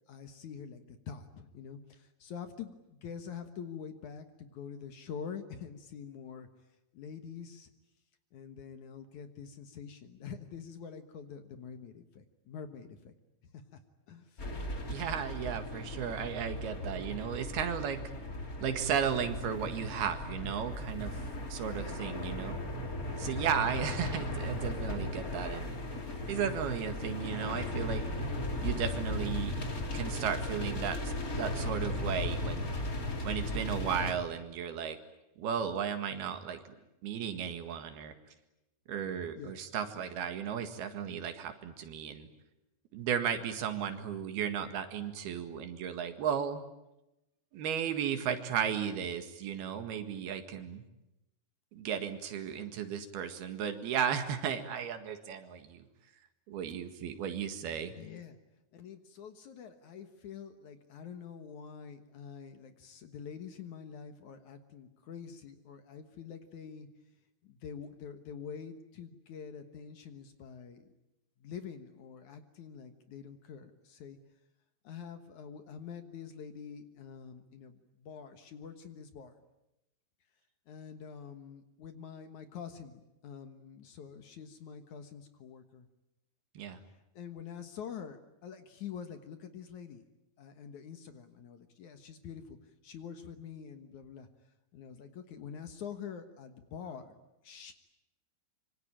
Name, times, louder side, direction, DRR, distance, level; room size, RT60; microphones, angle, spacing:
voice 1, 0.1-6.5 6.9-7.7 8.3-13.1 13.5-13.8 14.1-14.4 21.2-21.3 39.4-39.5 57.9-58.4 58.7-66.9 67.4-70.9 71.4-74.2 74.8-79.3 80.7-85.9 87.1-90.1 90.4-92.6 92.8-94.3 94.7-97.2 97.4-97.7, left 7 dB, 60° left, 8 dB, 2.4 m, -46 dB
sound 1, 14.4-34.1, left 1 dB, 25° left, 2.7 m, -36 dB
voice 2, 14.9-18.0 18.6-21.2 21.5-22.6 23.2-25.8 26.3-28.1 28.6-29.6 29.9-32.7 33.2-35.0 35.4-36.8 37.0-38.2 38.9-42.3 42.9-46.6 47.5-50.8 51.7-55.9 56.5-57.9 86.6-86.8, right 8 dB, 80° right, 8 dB, 3.8 m, -35 dB
26.0 x 25.0 x 8.9 m, 0.91 s
omnidirectional pair, 4.5 m